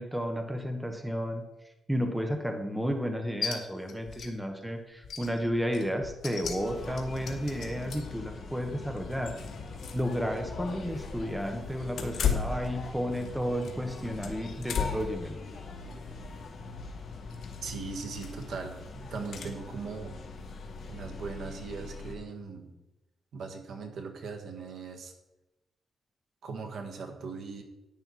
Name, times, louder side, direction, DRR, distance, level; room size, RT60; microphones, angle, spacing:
voice 1, 0.0-1.4 1.9-9.3 9.9-15.4, equal, 5° right, 4 dB, 1.0 m, -32 dB
sound 1, 3.4-3.6 3.9-4.3 4.6-4.7 5.0-8.2 8.7-10.1 10.4-10.5 11.9-13.3 13.6-15.2 15.6-15.9 17.3-17.7 18.2-18.5 19.3-19.5, left 7 dB, 70° left, 1.8 m, -35 dB
sound 2, 6.6-22.1, left 3 dB, 50° left, 2.0 m, -42 dB
voice 2, 17.6-20.2 20.9-22.7 23.3-25.1 26.4-27.6, right 4 dB, 60° right, 4 dB, 1.5 m, -39 dB
10.5 x 9.7 x 4.1 m, 0.97 s
wide cardioid pair, 165°, 0 cm